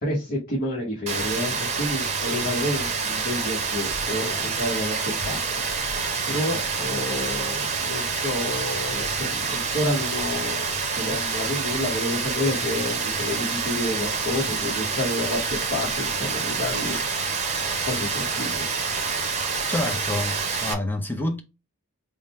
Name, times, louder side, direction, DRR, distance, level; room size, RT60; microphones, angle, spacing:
voice 1, 0.0-5.4 6.3-15.4 15.7-17.0 17.9-18.7, left 1 dB, 40° left, 1.1 m, -29 dB
Rain, 1.1-20.7, right 4 dB, 30° right, 0.8 m, -27 dB
voice 2, 19.7-21.4, left 1 dB, 10° left, 0.6 m, -28 dB
3.7 x 2.1 x 4.2 m
head